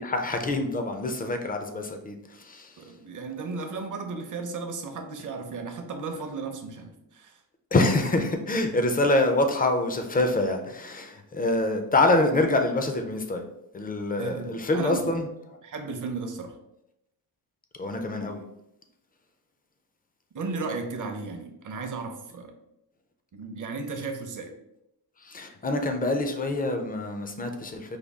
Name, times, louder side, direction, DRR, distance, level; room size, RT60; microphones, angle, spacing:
voice 1, 0.0-2.8 7.7-13.4 13.7-15.3 17.8-18.4 25.2-28.0, left 2 dB, 20° left, 5 dB, 0.4 m, -26 dB
voice 2, 2.8-7.4 14.2-15.0 15.6-16.5 20.3-22.5 23.3-24.5, right 4 dB, 50° right, 5 dB, 0.6 m, -35 dB
5.0 x 2.3 x 3.4 m, 0.83 s
wide cardioid pair, 150°, 41 cm